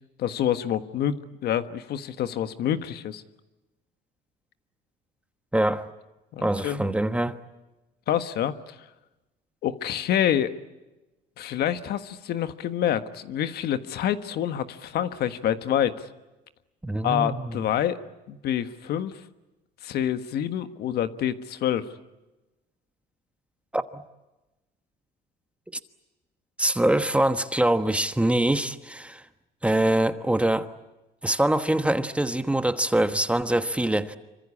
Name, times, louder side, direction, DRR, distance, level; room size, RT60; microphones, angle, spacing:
voice 1, 0.2-3.2 6.3-6.9 8.1-8.9 9.6-10.6 11.4-16.1 17.0-18.0 18.3-19.2 19.8-21.9, left 10 dB, 70° left, 1.5 m, -27 dB
voice 2, 5.5-5.9 6.4-7.4 16.8-17.6 23.7-24.0 26.6-29.2 29.6-30.7 31.2-34.2, right 1 dB, 5° right, 1.2 m, -24 dB
26.5 x 25.0 x 8.6 m
cardioid pair, 110°, 17 cm